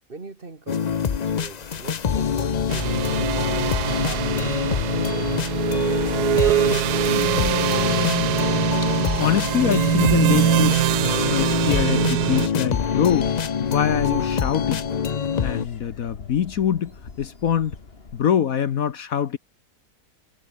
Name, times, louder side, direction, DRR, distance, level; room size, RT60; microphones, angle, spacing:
voice 1, 0.1-5.2, right 3 dB, 35° right, 2.0 m, -41 dB
sound 1, 0.7-15.7, left 7 dB, 80° left, 0.3 m, -25 dB
sound 2, 1.1-18.3, left 4 dB, 35° left, 2.3 m, -43 dB
sound 3, 2.7-12.5, right 14 dB, 75° right, 1.2 m, -23 dB
voice 2, 7.1-8.3 9.2-10.8 11.3-13.3 13.6-14.8 15.4-16.9 17.2-17.8 18.1-19.4, left 9 dB, 60° left, 1.3 m, -24 dB
omnidirectional pair, 1.8 m